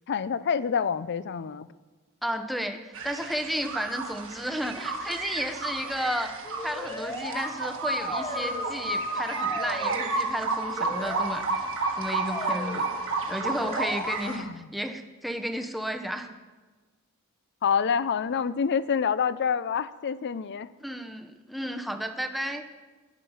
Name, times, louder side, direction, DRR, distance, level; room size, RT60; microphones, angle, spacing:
voice 1, 0.1-1.7 14.2-14.7 17.6-20.7, left 6 dB, 50° left, 16 dB, 0.4 m, -27 dB
voice 2, 2.2-6.4 6.6-11.7 12.0-12.9 13.3-16.3 20.8-22.6, equal, ahead, 6 dB, 0.7 m, -33 dB
sound 1, 2.9-14.4, right 3 dB, 60° right, 1.5 m, -31 dB
sound 2, 6.4-7.5 7.8-8.8 9.1-10.1 10.6-11.4 11.8-12.8 13.4-14.2, left 2 dB, 25° left, 2.0 m, -36 dB
11.5 x 10.0 x 5.6 m, 1.3 s
head